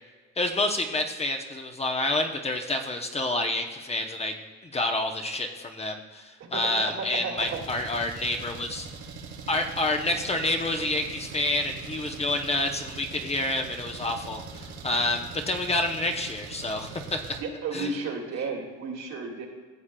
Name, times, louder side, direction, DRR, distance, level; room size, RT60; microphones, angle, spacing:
voice 1, 0.4-4.3 4.7-8.9 9.5-14.4 14.8-17.2 17.7-17.9, left 2 dB, 20° left, 3 dB, 0.7 m, -28 dB
voice 2, 6.4-7.6 17.4-19.5, right 4 dB, 65° right, 0 dB, 2.1 m, -33 dB
Engine, 7.4-17.4, right 5 dB, 80° right, 1.3 m, -42 dB
14.5 x 7.2 x 2.2 m, 1.4 s
cardioid pair, 120°, 29 cm